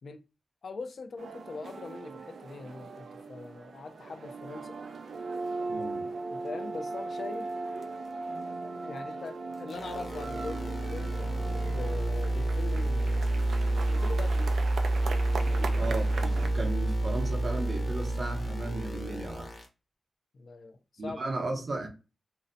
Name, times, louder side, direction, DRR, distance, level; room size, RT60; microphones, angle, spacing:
voice 1, 0.6-4.8 6.3-7.5 8.8-13.4 13.9-14.5 15.4-16.0 20.3-21.4, left 4 dB, 65° left, 0.3 m, -42 dB
sound 1, 1.2-16.5, right 3 dB, 85° right, 0.3 m, -39 dB
voice 2, 5.7-6.1 15.8-19.5 21.0-21.9, right 2 dB, 50° right, 0.7 m, -35 dB
sound 2, 9.7-19.6, right 1 dB, 40° left, 0.7 m, -29 dB
2.6 x 2.0 x 2.5 m
wide cardioid pair, 105°, 0 cm